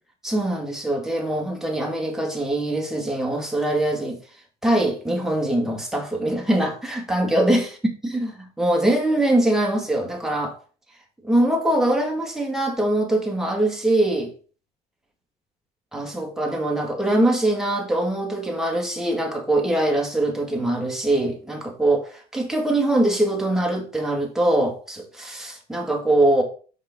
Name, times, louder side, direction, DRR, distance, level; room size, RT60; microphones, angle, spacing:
voice 1, 0.2-4.2 4.6-7.7 8.0-10.6 11.2-14.3 15.9-26.4, right 1 dB, 5° right, 1.8 m, -22 dB
5.5 x 5.3 x 3.6 m
cardioid pair, 110°, 17 cm